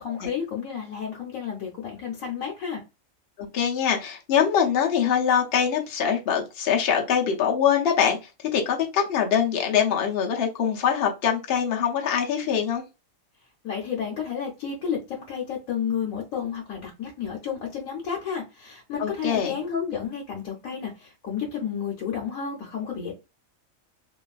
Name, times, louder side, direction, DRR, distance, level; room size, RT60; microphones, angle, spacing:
voice 1, 0.0-2.8 13.6-23.1, left 7 dB, 90° left, 1.2 m, -31 dB
voice 2, 3.5-8.2 8.5-12.8 19.0-19.6, left 8 dB, 55° left, 0.8 m, -23 dB
3.0 x 2.5 x 2.3 m
omnidirectional pair, 1.4 m